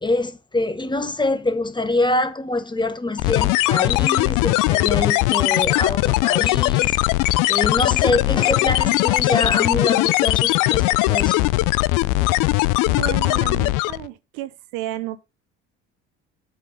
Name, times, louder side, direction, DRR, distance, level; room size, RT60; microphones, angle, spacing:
voice 1, 0.0-7.0 7.5-11.4, left 2 dB, 15° left, 1.1 m, -25 dB
sound 1, 3.2-14.1, left 19 dB, 70° left, 0.5 m, -19 dB
voice 2, 12.8-15.2, right 15 dB, 80° right, 0.8 m, -32 dB
8.1 x 5.8 x 4.9 m
supercardioid pair, 70°, 33 cm